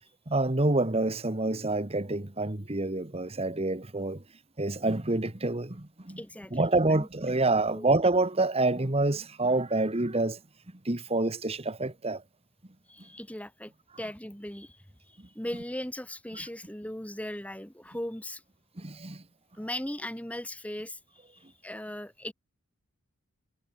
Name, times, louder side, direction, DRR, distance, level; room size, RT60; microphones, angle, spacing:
voice 1, 0.3-4.2 4.6-6.2 6.5-10.4 10.8-12.2 18.8-19.2, right 2 dB, 25° right, 1.4 m, -27 dB
voice 2, 6.2-7.1 7.7-7.9 12.9-13.7 14.0-18.4 19.6-21.2 21.6-22.3, left 1 dB, 5° left, 1.8 m, -38 dB
head